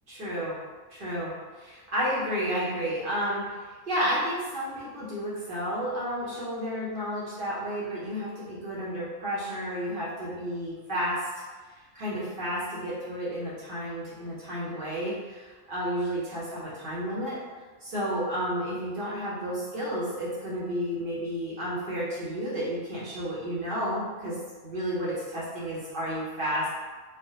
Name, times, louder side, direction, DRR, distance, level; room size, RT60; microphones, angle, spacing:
voice 1, 0.1-0.6 0.9-11.2 11.9-17.4 17.8-24.4 24.6-26.7, equal, 50° right, -8 dB, 0.9 m, -31 dB
3.3 x 2.1 x 2.7 m, 1.4 s
omnidirectional pair, 1.3 m